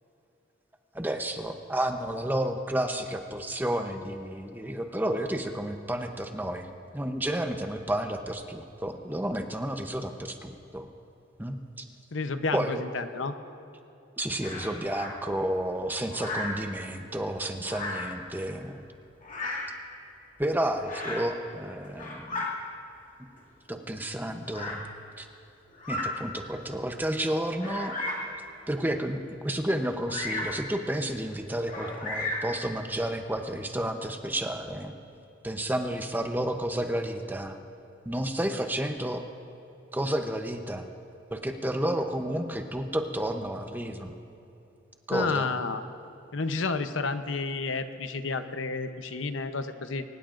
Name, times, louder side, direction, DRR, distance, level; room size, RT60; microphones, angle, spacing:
voice 1, 0.9-10.9 11.4-11.6 12.5-12.8 14.2-18.8 20.4-22.4 23.7-24.8 25.2-25.3 25.9-28.0 28.7-34.9 35.4-37.6 38.0-39.2 39.9-40.9 41.3-44.1 45.1-45.5, right 1 dB, 10° right, 5 dB, 0.7 m, -31 dB
voice 2, 12.1-13.3 45.1-45.8 46.3-50.0, left 3 dB, 75° left, 9 dB, 0.8 m, -30 dB
Bird vocalization bird call bird song, 14.4-15.1 16.1-16.6 17.6-18.2 19.2-19.8 20.9-21.3 21.8-22.5 23.4-23.5 24.5-24.8 25.7-26.1 26.7-26.8 27.6-28.3 30.1-30.6 31.7-32.5, left 2 dB, 40° left, 2.3 m, -34 dB
24.0 x 19.5 x 2.6 m, 2.8 s
head